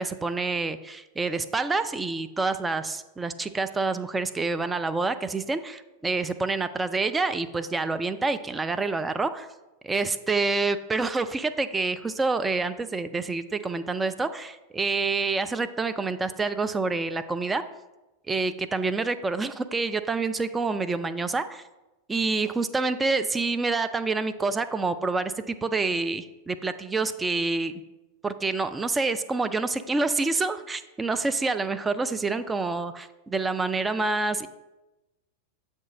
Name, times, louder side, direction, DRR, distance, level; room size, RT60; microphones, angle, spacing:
voice 1, 0.0-9.5 9.8-17.6 18.3-21.6 22.1-27.7 28.2-34.5, right 3 dB, 10° right, 10 dB, 0.3 m, -27 dB
7.2 x 2.6 x 5.2 m, 1.0 s
figure-of-eight pair, 90°, 0 cm